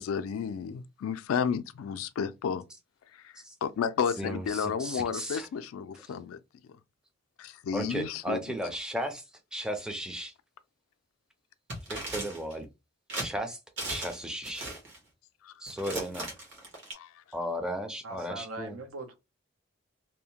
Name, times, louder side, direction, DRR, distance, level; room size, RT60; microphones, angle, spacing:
voice 1, 0.0-2.6 3.1-3.3 3.6-6.4 7.4-8.4 15.4-15.5 16.9-17.1, left 7 dB, 85° left, 0.3 m, -32 dB
voice 2, 4.2-5.5 6.0-6.1 7.7-9.2 9.5-10.3 11.9-12.7 13.1-13.6 13.9-14.7 15.6-16.3 17.3-18.8, equal, 5° right, 0.4 m, -35 dB
sound 1, 11.7-12.5 13.1-13.3 13.8-14.2 14.4-15.0 15.7-16.9, right 2 dB, 60° right, 1.2 m, -37 dB
voice 3, 18.0-19.1, right 3 dB, 85° right, 0.7 m, -41 dB
2.7 x 2.1 x 2.8 m
head